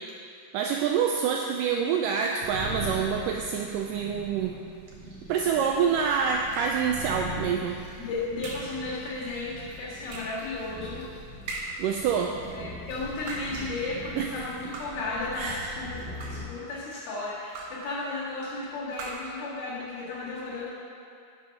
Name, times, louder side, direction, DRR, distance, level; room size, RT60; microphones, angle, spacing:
voice 1, 0.5-4.6 5.3-7.8 11.8-12.3 14.1-14.3 15.3-15.6, right 7 dB, 85° right, 2 dB, 1.9 m, -26 dB
sound 1, 2.4-16.4, equal, 45° right, 2.1 m, -41 dB
sound 2, 6.5-6.9 8.4-8.8 10.1-10.5 11.5-11.9 13.1-13.7 14.7-15.1 16.0-16.6 17.5-17.9 18.9-19.4, right 2 dB, 65° right, 2.5 m, -39 dB
voice 2, 8.0-11.0 12.5-20.7, left 3 dB, 80° left, -8 dB, 3.7 m, -34 dB
9.4 x 6.9 x 5.8 m, 2.5 s
omnidirectional pair, 4.3 m